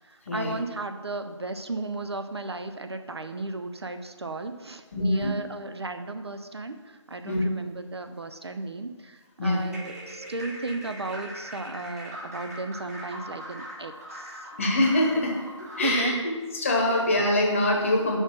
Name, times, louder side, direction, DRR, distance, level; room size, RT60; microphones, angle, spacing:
voice 1, 0.0-14.5 15.8-16.3 16.9-17.0, right 2 dB, 55° right, 7 dB, 0.6 m, -34 dB
voice 2, 4.9-5.3 7.3-7.4 9.4-9.7 14.6-15.4 15.8-18.2, left 1 dB, 25° left, 0 dB, 1.1 m, -24 dB
sound 1, 9.6-16.1, right 1 dB, 30° right, 1.5 m, -41 dB
6.5 x 4.7 x 6.2 m, 1.4 s
figure-of-eight pair, 160°, 16 cm